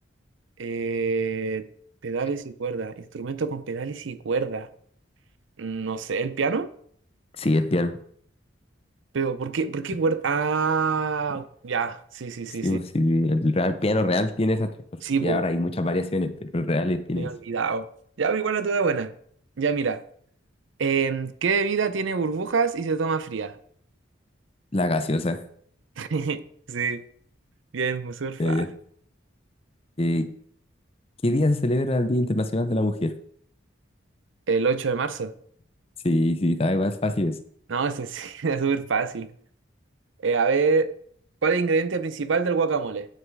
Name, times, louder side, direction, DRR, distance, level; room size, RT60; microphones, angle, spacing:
voice 1, 0.6-1.7 2.0-4.7 5.6-6.7 9.1-12.8 15.0-15.4 17.2-17.9 18.2-19.1 19.6-20.0 20.8-23.5 26.0-26.4 26.7-27.0 27.7-28.6 34.5-35.3 37.7-39.3 40.2-40.9 41.4-43.1, right 5 dB, 75° right, 0.5 m, -26 dB
voice 2, 7.4-7.9 12.6-14.7 15.2-17.3 24.7-25.4 28.4-28.7 30.0-30.3 31.2-33.2 36.0-37.4, left 1 dB, 30° left, 0.6 m, -24 dB
9.2 x 6.4 x 4.7 m
head